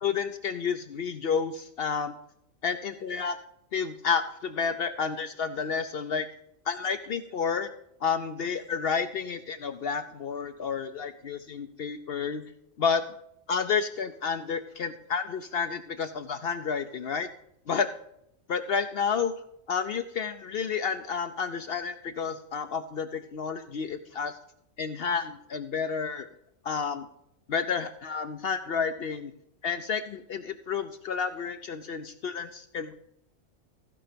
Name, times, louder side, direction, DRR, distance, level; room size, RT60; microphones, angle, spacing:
voice 1, 0.0-2.2 2.6-3.4 3.7-6.3 6.7-7.7 8.0-12.4 12.8-13.0 13.5-17.3 17.7-17.9 18.5-19.3 19.7-24.3 24.8-26.3 26.6-27.1 27.5-29.3 29.6-32.9, left 6 dB, 60° left, 10 dB, 0.7 m, -30 dB
15.0 x 5.6 x 5.1 m, 0.76 s
omnidirectional pair, 1.4 m